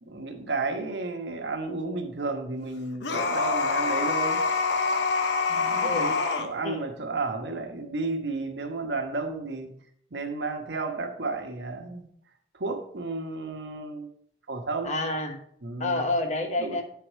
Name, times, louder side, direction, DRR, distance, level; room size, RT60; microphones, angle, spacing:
voice 1, 0.0-4.4 5.5-9.8 10.1-12.1 12.5-14.1 14.5-14.9 15.6-16.0 16.6-16.8, right 3 dB, 80° right, 4 dB, 1.1 m, -32 dB
sound 1, 3.0-6.5, left 4 dB, 80° left, 0.8 m, -25 dB
voice 2, 14.8-15.4 15.8-16.8, left 2 dB, 40° left, 4 dB, 1.0 m, -28 dB
8.4 x 4.8 x 4.6 m, 0.66 s
head